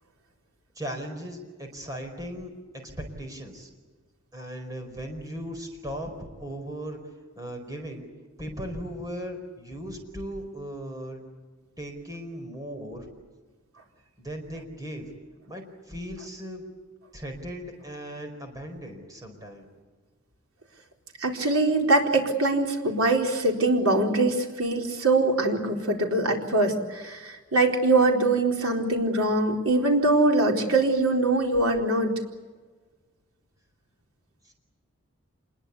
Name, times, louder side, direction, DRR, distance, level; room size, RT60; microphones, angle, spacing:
voice 1, 0.8-3.7 4.3-7.0 7.4-8.1 8.4-11.2 11.8-13.1 14.2-15.0 15.5-16.6 17.1-19.7 34.4-34.5, equal, 15° right, 4 dB, 4.6 m, -37 dB
voice 2, 21.2-32.1, right 2 dB, 85° right, 1 dB, 4.2 m, -23 dB
27.0 x 21.0 x 8.4 m, 1.4 s
head